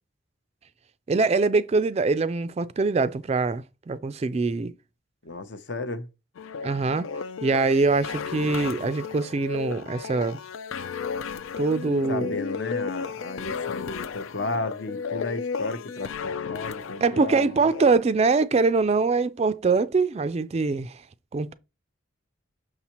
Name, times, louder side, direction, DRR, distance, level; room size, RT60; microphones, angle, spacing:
voice 1, 1.1-4.7 6.6-7.1 7.4-10.4 11.6-12.3 17.0-21.0 21.3-21.5, right 4 dB, 30° right, 0.3 m, -23 dB
voice 2, 5.2-6.1 12.1-17.5, left 3 dB, 60° left, 0.7 m, -33 dB
sound 1, 6.4-18.0, left 5 dB, 90° left, 0.4 m, -34 dB
6.5 x 5.6 x 2.9 m
head